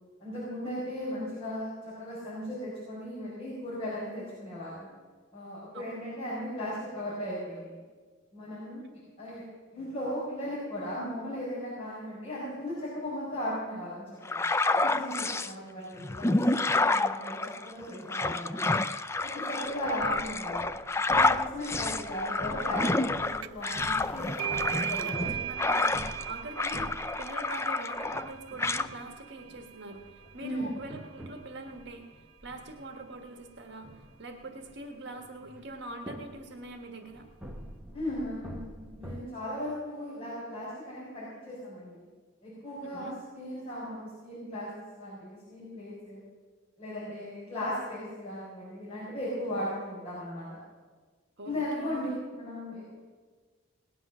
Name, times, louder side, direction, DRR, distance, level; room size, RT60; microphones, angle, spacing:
voice 1, 0.2-4.9 5.3-7.8 8.3-8.8 9.2-9.4 9.7-14.4 14.8-18.8 19.2-20.7 21.1-25.3 30.4-30.7 37.9-42.1 42.4-46.2 46.8-50.6 51.4-52.9, equal, 30° left, -9 dB, 5.2 m, -37 dB
sound 1, 14.3-15.5 16.0-26.3 26.6-28.3 28.6-28.9, left 3 dB, 15° left, 0.4 m, -29 dB
voice 2, 15.1-15.6 25.2-26.9 27.2-32.1 32.4-37.3 42.8-43.1 51.4-52.0, right 2 dB, 55° right, 4 dB, 1.5 m, -43 dB
sound 2, 19.6-27.7 28.1-39.2, right 1 dB, 5° right, 1.0 m, -46 dB
sound 3, 23.4-23.7 24.0-31.3, right 10 dB, 85° right, 0.5 m, -38 dB
18.5 x 10.0 x 6.2 m, 1.5 s
head